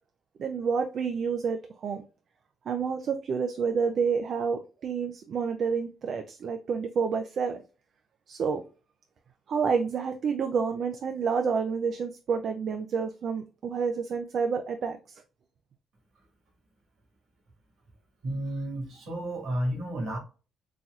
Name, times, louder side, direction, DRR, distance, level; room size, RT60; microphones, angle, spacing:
voice 1, 0.4-2.0 2.7-7.6 8.3-8.6 9.5-15.2, right 5 dB, 60° right, 0.4 m, -29 dB
voice 2, 18.2-20.2, right 1 dB, 75° right, 1.7 m, -31 dB
4.0 x 2.9 x 2.3 m
cardioid pair, 90°, 0 cm